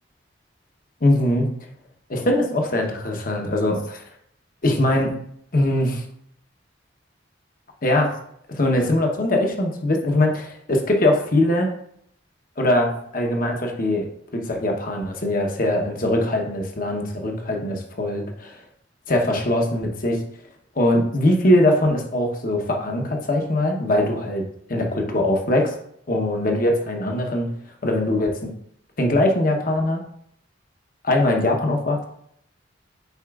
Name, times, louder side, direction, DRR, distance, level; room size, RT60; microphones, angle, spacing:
voice 1, 1.0-1.5 2.1-4.0 4.6-5.1 5.5-6.0 7.8-8.1 8.5-11.7 12.6-14.1 14.3-18.6 19.1-20.2 20.8-24.4 24.7-25.7 26.1-27.5 27.8-28.5 29.0-30.0 31.0-32.0, left 1 dB, 45° left, 2 dB, 0.9 m, -21 dB
8.0 x 4.9 x 2.4 m, 0.70 s
head